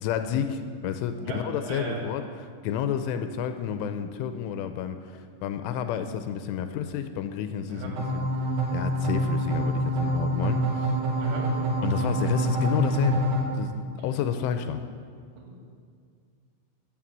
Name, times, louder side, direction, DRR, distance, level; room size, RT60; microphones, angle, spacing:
voice 1, 0.0-8.3 8.7-11.0 11.8-13.3 13.5-14.8, left 8 dB, 85° left, 8 dB, 3.0 m, -30 dB
voice 2, 1.2-2.0 7.7-7.9 11.2-11.5 15.4-15.6, right 5 dB, 70° right, -2 dB, 4.7 m, -36 dB
sound 1, 8.0-13.4, right 1 dB, 55° right, 2.9 m, -26 dB
15.0 x 7.1 x 7.3 m, 2.2 s
omnidirectional pair, 5.7 m